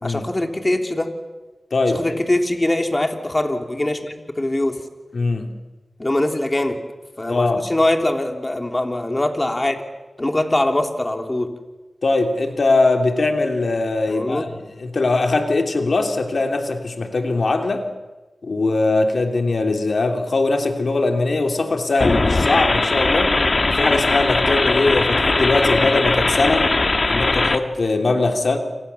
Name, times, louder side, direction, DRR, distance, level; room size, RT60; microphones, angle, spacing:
voice 1, 0.0-1.1 1.9-4.8 6.0-6.8 7.2-9.8 10.2-11.5 14.1-14.4, left 1 dB, 30° left, 4 dB, 3.2 m, -22 dB
voice 2, 1.7-2.2 5.1-5.5 7.3-7.7 12.0-17.8 18.4-23.4 23.6-26.7 27.0-28.6, left 3 dB, 75° left, 4 dB, 3.0 m, -21 dB
sound 1, 22.0-27.6, left 3 dB, 55° left, 1.7 m, -19 dB
29.0 x 25.5 x 7.1 m, 1.2 s
cardioid pair, 50°, 0 cm